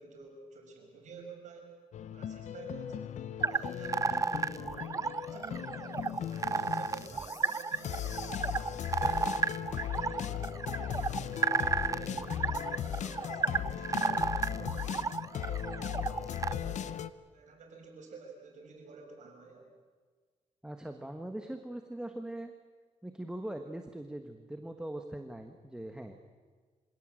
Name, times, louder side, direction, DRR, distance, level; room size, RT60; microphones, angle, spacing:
voice 1, 0.0-1.7 2.1-3.2 3.5-4.9 5.2-9.3 9.6-10.6 10.9-14.9 15.3-16.9 17.3-19.7, right 4 dB, 75° right, 1 dB, 5.9 m, -50 dB
sound 1, 1.9-17.1, left 9 dB, 70° left, 0.8 m, -38 dB
sound 2, 3.4-16.5, right 4 dB, 25° right, 0.6 m, -33 dB
voice 2, 20.6-22.5 23.0-26.2, right 1 dB, 5° right, 5 dB, 1.4 m, -41 dB
26.0 x 17.5 x 7.7 m, 1.5 s
cardioid pair, 110°, 12 cm